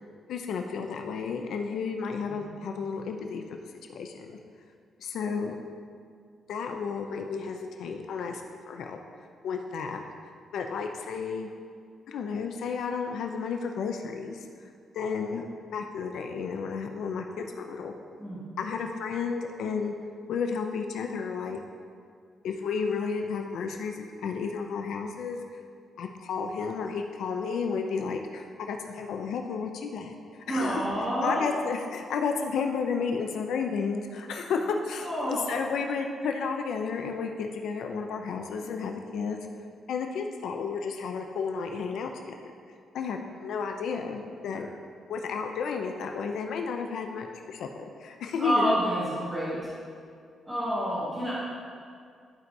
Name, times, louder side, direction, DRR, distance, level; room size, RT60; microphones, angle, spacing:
voice 1, 0.3-4.4 5.0-5.5 6.5-9.0 9.4-10.0 10.5-11.5 12.1-14.5 14.9-15.4 15.7-17.9 18.6-19.9 20.3-21.6 22.4-25.6 26.0-30.1 30.5-30.8 31.2-39.4 39.9-42.5 42.9-44.7 45.1-48.8, left 5 dB, 70° left, 4 dB, 0.5 m, -32 dB
voice 2, 30.5-31.5 35.0-35.6 48.4-49.7 50.4-51.3, equal, 10° right, -11 dB, 1.6 m, -28 dB
12.0 x 4.6 x 2.7 m, 2.2 s
wide cardioid pair, 180°, 0 cm